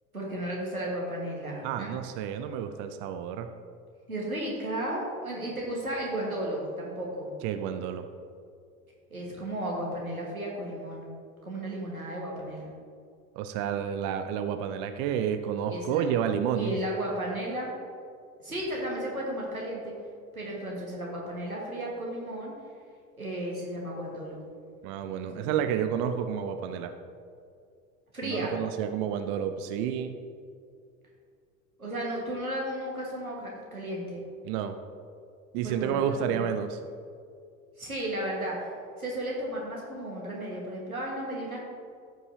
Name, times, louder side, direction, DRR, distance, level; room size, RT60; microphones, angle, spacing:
voice 1, 0.1-1.9 4.1-7.3 9.1-11.0 11.4-12.7 15.7-16.1 16.6-17.7 18.4-19.9 20.3-22.6 23.2-24.4 25.2-25.6 28.1-28.5 31.8-34.2 35.6-36.4 37.8-38.7 39.0-41.6, right 1 dB, 90° right, -3 dB, 1.7 m, -34 dB
voice 2, 1.6-3.5 7.4-8.1 13.4-16.8 24.8-26.9 28.2-30.1 34.4-34.8 35.5-36.8, right 8 dB, 45° right, 8 dB, 0.6 m, -30 dB
13.5 x 5.5 x 2.8 m, 2.3 s
figure-of-eight pair, 75°, 42 cm